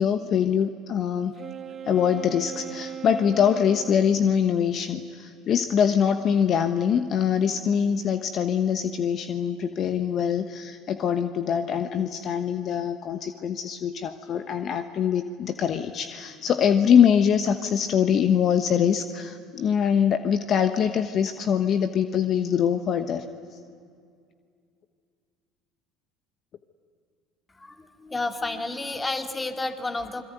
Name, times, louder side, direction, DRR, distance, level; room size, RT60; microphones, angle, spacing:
voice 1, 0.0-1.3 1.9-23.2, left 8 dB, 50° left, 9 dB, 1.2 m, -23 dB
Wind instrument woodwind instrument, 1.3-4.2, right 8 dB, 40° right, 1.8 m, -38 dB
voice 2, 27.6-30.2, left 2 dB, 20° left, 6 dB, 2.3 m, -31 dB
28.0 x 22.0 x 9.3 m, 2.2 s
hypercardioid pair, 70°, 0 cm